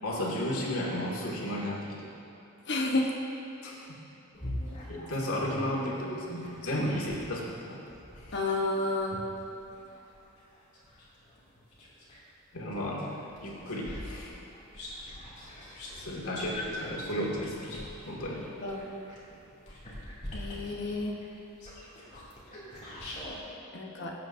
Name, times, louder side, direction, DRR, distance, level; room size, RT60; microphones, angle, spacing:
voice 1, 0.0-2.1 3.6-4.0 4.9-7.8 8.2-8.4 12.5-13.2 13.4-14.3 15.9-17.8 18.1-18.4 20.5-20.6, left 1 dB, 80° left, -5 dB, 2.2 m, -34 dB
voice 2, 2.7-3.1 8.3-9.2 18.6-18.9 20.3-21.1 23.7-24.1, left 2 dB, 55° left, 0 dB, 1.1 m, -30 dB
sound 1, 4.3-7.3 7.9-12.2 12.7-23.4, left 1 dB, 35° left, 2.6 m, -42 dB
18.5 x 8.3 x 2.6 m, 2.9 s
head